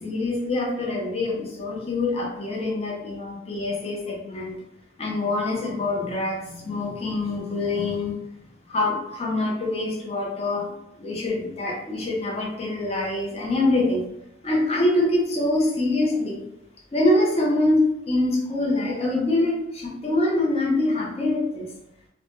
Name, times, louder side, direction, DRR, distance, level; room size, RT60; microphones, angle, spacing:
voice 1, 0.0-4.6 5.0-8.1 8.7-10.6 11.0-14.0 14.4-16.4 16.9-21.7, left 2 dB, 30° left, -2 dB, 0.5 m, -24 dB
2.1 x 2.0 x 2.9 m, 0.84 s
head